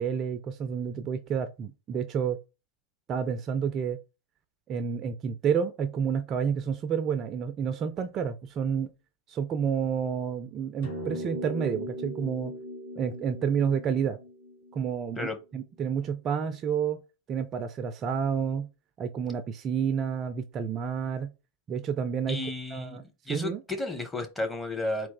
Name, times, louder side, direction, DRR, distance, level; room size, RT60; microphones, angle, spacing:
voice 1, 0.0-2.4 3.1-4.0 4.7-8.9 9.3-12.5 13.0-14.2 14.7-17.0 17.3-18.7 19.0-21.3 21.7-22.4 22.7-23.6, right 7 dB, 30° right, 0.4 m, -29 dB
sound 1, 10.8-15.4, equal, 55° left, 1.6 m, -39 dB
voice 2, 22.3-25.1, left 2 dB, 5° left, 0.9 m, -33 dB
4.1 x 2.4 x 3.9 m
figure-of-eight pair, 90°, 0 cm